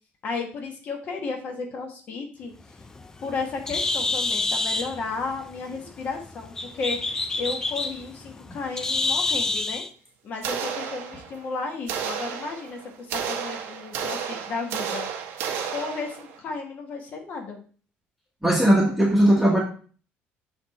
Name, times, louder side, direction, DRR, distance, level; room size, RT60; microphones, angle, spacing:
voice 1, 0.2-2.5 3.2-9.8 10.2-15.1 15.7-17.6, left 4 dB, 40° left, 2 dB, 1.4 m, -33 dB
Bird, 2.6-9.9, left 3 dB, 15° left, 0.3 m, -28 dB
sound 1, 10.4-11.5 11.9-16.4, right 7 dB, 70° right, 1.0 m, -32 dB
voice 2, 18.4-19.6, right 1 dB, 5° right, -4 dB, 1.3 m, -18 dB
7.0 x 3.5 x 4.2 m, 0.41 s
cardioid pair, 165°, 4 cm